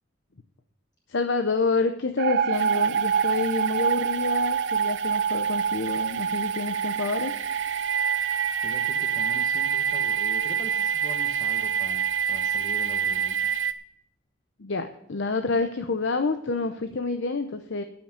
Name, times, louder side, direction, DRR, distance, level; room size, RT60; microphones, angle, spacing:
voice 1, 1.1-7.3 14.6-17.8, left 3 dB, 70° left, 8 dB, 0.8 m, -28 dB
sound 1, 2.2-13.3, right 7 dB, 50° right, 0.4 m, -28 dB
sound 2, 2.5-13.7, right 8 dB, 80° right, 0.8 m, -29 dB
voice 2, 8.6-13.5, equal, 20° left, 2 dB, 1.2 m, -42 dB
12.5 x 6.0 x 8.9 m, 0.85 s
head